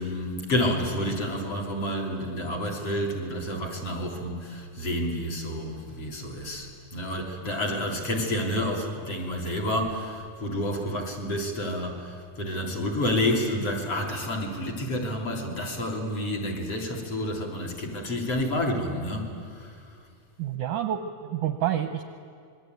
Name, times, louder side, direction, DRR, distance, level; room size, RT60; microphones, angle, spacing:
voice 1, 0.0-19.8, left 1 dB, 40° left, 1 dB, 3.8 m, -29 dB
voice 2, 20.4-22.0, right 10 dB, 75° right, 8 dB, 1.9 m, -28 dB
26.0 x 22.0 x 9.3 m, 2.4 s
omnidirectional pair, 4.5 m